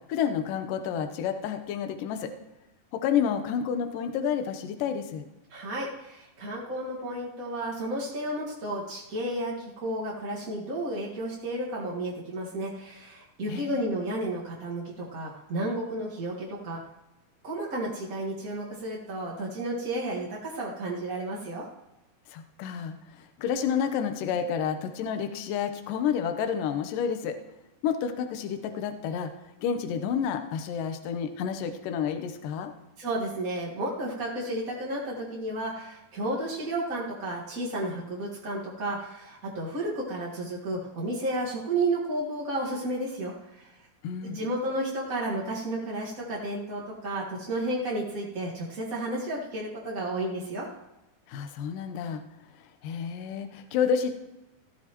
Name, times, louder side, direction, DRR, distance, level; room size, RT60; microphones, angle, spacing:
voice 1, 0.1-2.3 2.9-5.2 13.5-14.0 22.3-27.4 27.8-29.3 29.6-32.7 44.0-44.6 51.3-52.2 52.8-54.1, left 7 dB, 70° left, 7 dB, 2.3 m, -30 dB
voice 2, 5.5-16.8 17.4-21.7 33.0-43.7 44.2-50.7, right 1 dB, 40° right, -5 dB, 1.2 m, -32 dB
15.0 x 14.0 x 3.0 m, 0.97 s
omnidirectional pair, 4.4 m